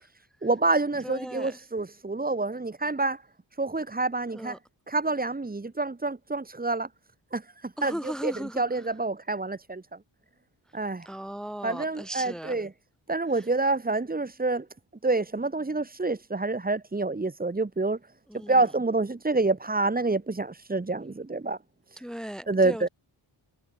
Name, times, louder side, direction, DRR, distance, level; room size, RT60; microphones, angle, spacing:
voice 1, 0.4-3.2 3.6-4.6 4.9-6.9 7.3-9.8 10.7-11.1 11.6-12.7 13.1-14.6 15.0-18.0 18.5-21.6 22.5-22.9, right 3 dB, 20° right, 1.1 m, -27 dB
voice 2, 1.0-1.6 4.3-4.6 7.8-8.6 11.0-12.6 13.4-13.5 18.3-18.6 22.0-22.9, equal, ahead, 1.3 m, -37 dB
cardioid pair, 60°, 48 cm